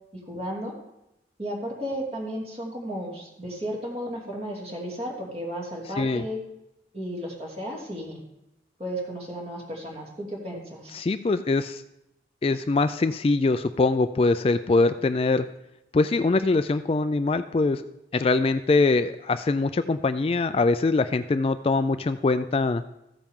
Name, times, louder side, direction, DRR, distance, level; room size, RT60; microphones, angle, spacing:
voice 1, 0.1-0.8 1.4-6.4 6.9-8.2 8.8-11.0, equal, 35° right, -2 dB, 2.8 m, -34 dB
voice 2, 10.9-11.8 12.4-15.5 15.9-17.8 18.1-22.8, left 3 dB, 30° left, 11 dB, 0.3 m, -23 dB
14.5 x 9.0 x 3.7 m, 0.89 s
head